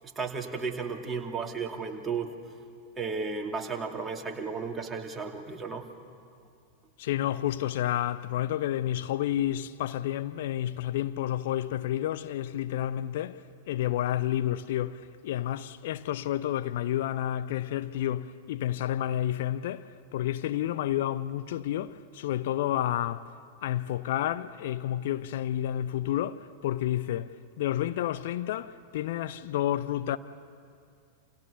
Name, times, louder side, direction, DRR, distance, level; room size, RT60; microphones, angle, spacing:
voice 1, 0.0-2.4 3.0-5.9, right 5 dB, 15° right, 2.7 m, -34 dB
voice 2, 7.0-23.3 23.6-27.3 27.6-30.2, left 12 dB, 55° left, 0.7 m, -30 dB
29.0 x 28.5 x 6.9 m
figure-of-eight pair, 90°, 0 cm